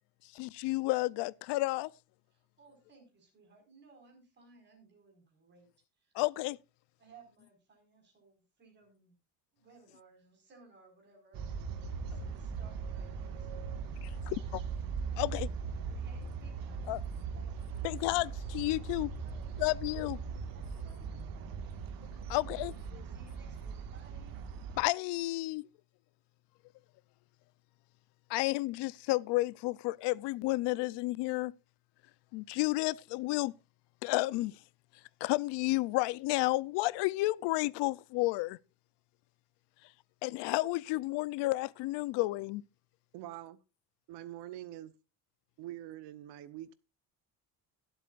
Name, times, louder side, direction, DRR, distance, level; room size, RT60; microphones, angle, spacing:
voice 1, 0.3-1.9 6.1-6.6 14.2-14.6 15.2-15.5 16.9-17.0 17.8-19.1 19.6-20.2 22.3-22.7 24.8-25.7 28.3-31.5 32.3-33.5 34.0-34.6 35.2-38.6 40.2-42.6, left 20 dB, 85° left, 0.7 m, -31 dB
voice 2, 2.3-5.7 6.0-6.1 7.0-9.2 9.5-14.4 15.9-16.9 17.2-17.9 19.2-19.4 20.3-21.7 22.2-22.5 22.9-24.4, right 4 dB, 25° right, 4.9 m, -61 dB
sound 1, 11.3-24.8, right 5 dB, 55° right, 1.8 m, -39 dB
voice 3, 43.1-43.6 44.1-45.0 45.6-46.7, right 13 dB, 80° right, 1.0 m, -44 dB
22.0 x 8.1 x 2.5 m
cardioid pair, 180°, 40 cm